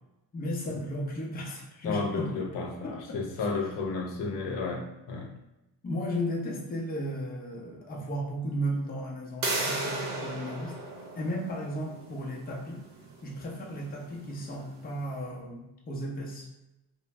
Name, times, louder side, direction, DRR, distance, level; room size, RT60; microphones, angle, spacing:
voice 1, 0.3-2.3 2.8-3.5 5.8-10.7 11.2-12.8 13.2-16.5, equal, 20° left, -3 dB, 0.6 m, -35 dB
voice 2, 1.8-5.3, left 4 dB, 85° left, 1 dB, 0.7 m, -32 dB
sound 1, 9.4-15.0, right 2 dB, 50° right, 0.8 m, -36 dB
2.5 x 2.0 x 3.2 m, 0.94 s
cardioid pair, 130°, 42 cm